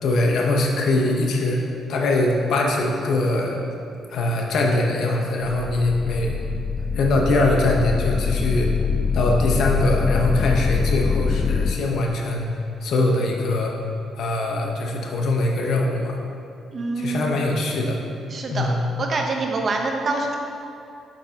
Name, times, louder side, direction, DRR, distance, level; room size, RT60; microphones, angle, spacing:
voice 1, 0.0-3.6 4.1-6.4 6.9-8.7 9.1-12.5 12.8-13.7 14.2-16.2 17.0-18.0 18.5-18.8, left 2 dB, 70° left, 0 dB, 0.9 m, -22 dB
sound 1, 5.4-11.7, left 5 dB, 35° left, 0.5 m, -24 dB
voice 2, 16.7-17.3 18.3-18.7 19.0-20.3, right 3 dB, 45° right, 2 dB, 0.8 m, -25 dB
7.1 x 5.9 x 2.9 m, 2.6 s
cardioid pair, 90°, 0 cm